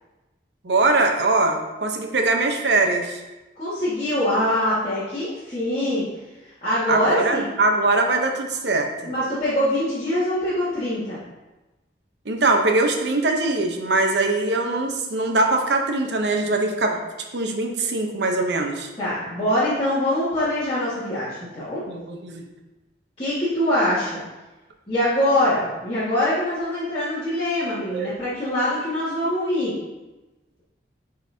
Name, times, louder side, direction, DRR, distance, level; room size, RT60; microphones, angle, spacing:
voice 1, 0.6-3.2 6.9-9.1 12.3-16.9 17.3-18.9 21.9-22.5 27.9-28.1, right 2 dB, 70° right, 3 dB, 0.8 m, -22 dB
voice 2, 3.6-6.0 6.4-7.4 8.1-8.2 9.0-11.2 19.0-21.8 23.2-24.2 24.9-29.7, left 1 dB, 30° left, -14 dB, 1.8 m, -23 dB
9.1 x 4.0 x 2.7 m, 1.1 s
head